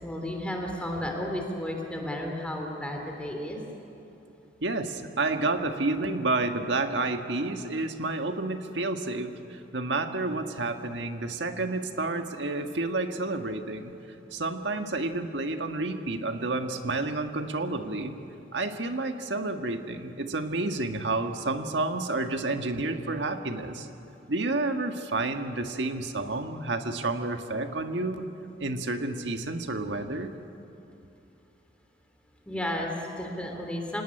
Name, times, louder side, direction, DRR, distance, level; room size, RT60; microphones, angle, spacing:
voice 1, 0.0-3.6 32.5-34.0, left 1 dB, 5° left, 1 dB, 3.1 m, -33 dB
voice 2, 4.6-13.9 14.3-18.2 18.5-23.9 24.3-28.2 28.6-30.3, right 2 dB, 70° right, 6 dB, 1.6 m, -30 dB
27.0 x 18.0 x 9.9 m, 2.9 s
head